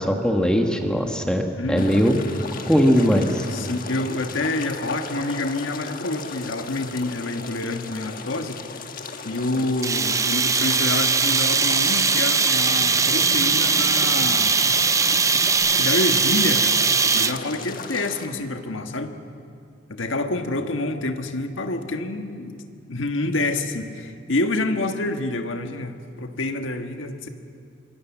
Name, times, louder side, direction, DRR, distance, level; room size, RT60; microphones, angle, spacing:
voice 1, 0.0-2.1 2.7-3.5, equal, 5° left, 2 dB, 1.5 m, -20 dB
voice 2, 1.6-2.0 3.5-8.6 9.2-14.6 15.6-16.9 17.1-19.1 19.9-22.6 22.9-27.3, left 2 dB, 85° left, 5 dB, 1.4 m, -27 dB
sound 1, 1.8-18.3, left 4 dB, 50° left, 1.4 m, -36 dB
sound 2, 9.8-17.5, right 5 dB, 15° right, 0.5 m, -20 dB
Snare drum, 11.7-16.5, equal, 30° left, 3.0 m, -40 dB
25.0 x 21.5 x 7.3 m, 2.4 s
head